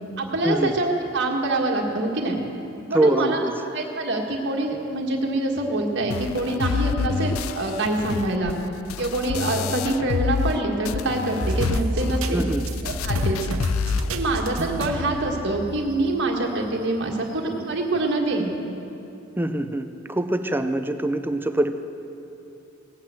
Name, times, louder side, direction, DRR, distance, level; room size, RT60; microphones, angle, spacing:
voice 1, 0.2-2.4 2.9-3.4 3.7-8.5 9.0-12.5 12.8-13.4 14.1-18.6, right 2 dB, 55° right, 0 dB, 1.7 m, -25 dB
voice 2, 2.9-3.6 12.3-12.6 19.4-21.7, right 1 dB, 10° right, 8 dB, 0.5 m, -24 dB
sound 1, 6.1-10.6 10.8-14.1, left 6 dB, 85° left, 0.4 m, -28 dB
sound 2, 11.4-16.1 16.6-16.7 17.6-17.7, right 1 dB, 90° right, 1.1 m, -29 dB
18.0 x 8.8 x 7.5 m, 2.8 s
head